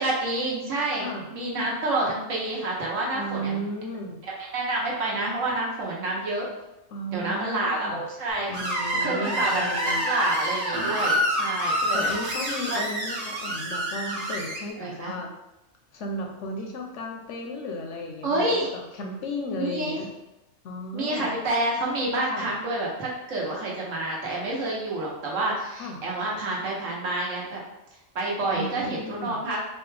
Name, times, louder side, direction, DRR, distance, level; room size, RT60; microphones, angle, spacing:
voice 1, 0.0-3.7 4.4-6.5 7.1-8.5 9.0-12.1 12.7-12.8 14.8-15.1 18.2-18.7 19.5-20.0 20.9-27.6 28.1-29.6, right 2 dB, 75° right, -4 dB, 1.3 m, -28 dB
voice 2, 0.9-1.3 3.1-4.2 6.9-8.0 8.5-10.1 11.9-15.3 15.9-20.1 20.6-21.3 22.2-22.5 25.8-26.0 28.5-29.4, left 1 dB, 70° left, 2 dB, 0.9 m, -34 dB
Screech, 8.5-14.6, equal, 35° right, 0.7 m, -27 dB
4.2 x 2.2 x 3.2 m, 0.93 s
omnidirectional pair, 1.4 m